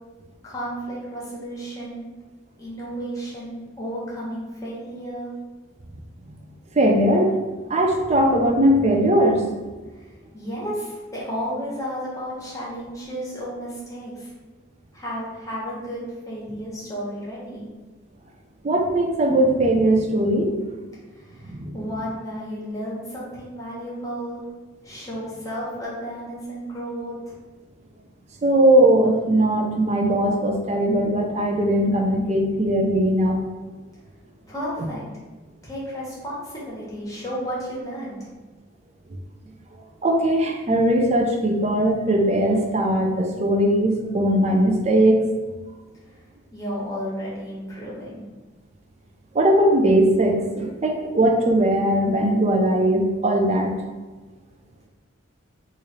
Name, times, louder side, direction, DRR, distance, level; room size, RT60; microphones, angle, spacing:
voice 1, 0.4-2.1 2.6-5.3 10.3-14.3 14.9-17.7 21.2-24.4 24.8-27.4 34.5-35.0 35.6-38.3 46.5-48.2, equal, 15° left, -7 dB, 1.0 m, -33 dB
voice 2, 6.8-7.4 7.7-9.5 18.6-20.6 21.5-21.8 28.4-33.4 40.0-45.2 49.3-53.7, right 1 dB, 30° right, 2 dB, 0.4 m, -19 dB
3.1 x 2.5 x 4.1 m, 1.3 s
head